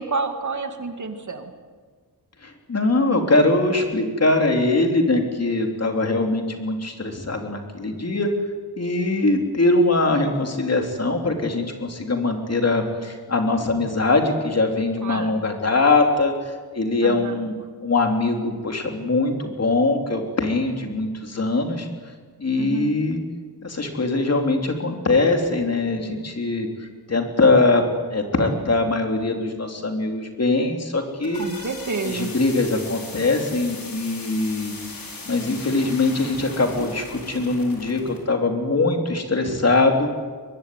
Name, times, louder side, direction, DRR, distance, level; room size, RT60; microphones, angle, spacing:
voice 1, 0.0-1.5 15.0-15.3 17.0-17.4 22.6-22.9 31.4-32.3, right 4 dB, 50° right, 6 dB, 2.3 m, -29 dB
voice 2, 2.4-8.3 8.8-17.5 17.8-21.9 22.4-23.2 23.6-31.5 32.0-34.7 35.3-40.1, left 2 dB, 40° left, 3 dB, 3.4 m, -22 dB
sound 1, 30.9-38.2, left 3 dB, 60° left, 6.2 m, -38 dB
23.5 x 21.0 x 9.4 m, 1.5 s
wide cardioid pair, 145°, 38 cm